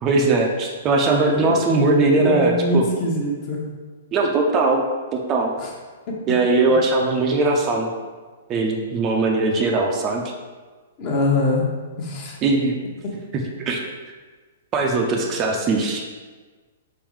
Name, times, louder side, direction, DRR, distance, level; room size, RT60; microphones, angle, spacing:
voice 1, 0.0-2.9 4.1-4.9 5.1-5.5 6.3-7.9 8.5-10.2 12.4-12.7 13.3-13.8 14.7-16.0, right 3 dB, 25° right, 1 dB, 0.5 m, -20 dB
voice 2, 2.1-3.6 5.6-5.7 6.1-6.2 11.0-11.7 12.0-12.4, left 1 dB, 35° left, -2 dB, 1.0 m, -23 dB
4.8 x 3.4 x 3.1 m, 1.4 s
figure-of-eight pair, 110°, 0 cm